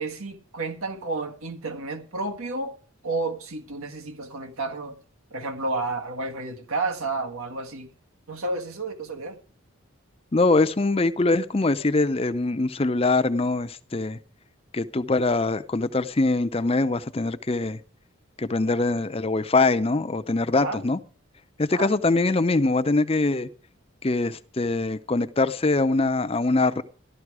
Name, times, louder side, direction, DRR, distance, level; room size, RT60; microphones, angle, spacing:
voice 1, 0.0-2.7 3.0-5.0 5.3-7.9 8.3-9.4 20.5-20.8 21.7-21.9, right 3 dB, 85° right, 1.7 m, -31 dB
voice 2, 10.3-14.2 14.7-17.8 18.4-21.0 21.6-23.5 24.0-26.8, left 3 dB, 25° left, 0.6 m, -23 dB
13.5 x 12.0 x 4.8 m
head